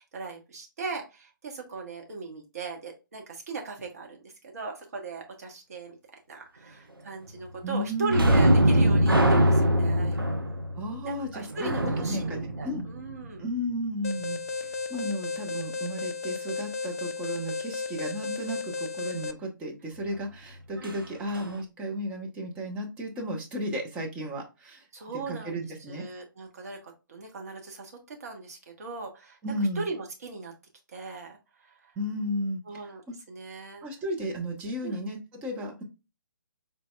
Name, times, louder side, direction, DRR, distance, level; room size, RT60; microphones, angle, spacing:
voice 1, 0.0-4.2 4.4-6.0 6.3-10.2 11.0-13.4 24.9-29.4 29.8-30.5 30.9-31.9 32.7-33.0 33.3-33.9 34.8-35.0, right 3 dB, 45° right, 1 dB, 1.2 m, -38 dB
voice 2, 7.6-8.4 10.8-12.4 12.6-12.8 13.4-24.9 25.1-26.1 29.4-29.9 32.0-33.2 33.8-35.8, equal, 10° right, 1 dB, 0.6 m, -34 dB
sound 1, 8.1-13.5 20.8-21.0 21.3-21.5, right 1 dB, 80° right, 0.7 m, -23 dB
Alarm, 14.0-19.3, left 4 dB, 40° left, 0.4 m, -34 dB
4.0 x 3.3 x 2.2 m, 0.28 s
figure-of-eight pair, 135°, 11 cm